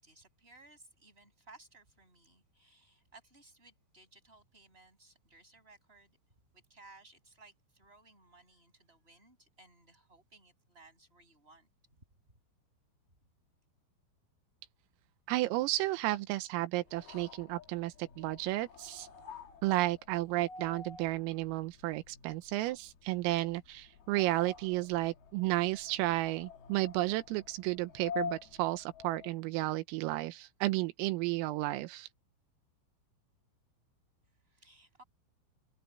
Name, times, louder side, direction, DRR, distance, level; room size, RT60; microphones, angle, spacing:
voice 1, 0.0-6.2 6.5-12.0 34.3-35.0, right 2 dB, 10° right, 6.9 m, -60 dB
voice 2, 15.3-19.1 19.6-32.1, right 18 dB, 85° right, 3.6 m, -32 dB
sound 1, 16.9-29.4, left 5 dB, 55° left, 3.6 m, -48 dB
omnidirectional pair, 5.9 m